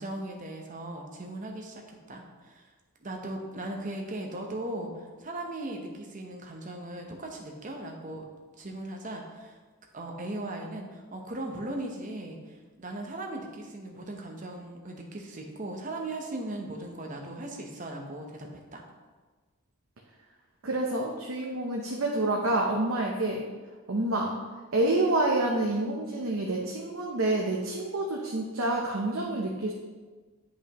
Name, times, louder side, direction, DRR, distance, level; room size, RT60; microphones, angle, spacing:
voice 1, 0.0-2.7 3.0-8.2 8.6-9.6 9.9-18.8, right 1 dB, 35° right, 1 dB, 0.9 m, -38 dB
voice 2, 20.6-23.4 23.9-24.3 24.7-29.7, right 2 dB, 70° right, -1 dB, 0.7 m, -28 dB
9.0 x 5.2 x 3.0 m, 1.3 s
head